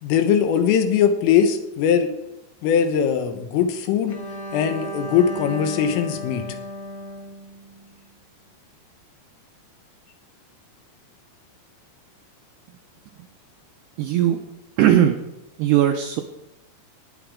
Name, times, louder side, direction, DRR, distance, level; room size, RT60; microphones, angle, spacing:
voice 1, 0.0-2.1 2.6-4.2 4.5-6.4, left 8 dB, 85° left, 7 dB, 3.7 m, -20 dB
Bowed string instrument, 4.1-8.1, right 1 dB, 15° left, 3.0 m, -34 dB
voice 2, 14.0-14.4 14.8-15.2 15.6-16.2, right 11 dB, 85° right, 4 dB, 2.4 m, -18 dB
18.5 x 9.1 x 3.7 m, 0.91 s
omnidirectional pair, 5.8 m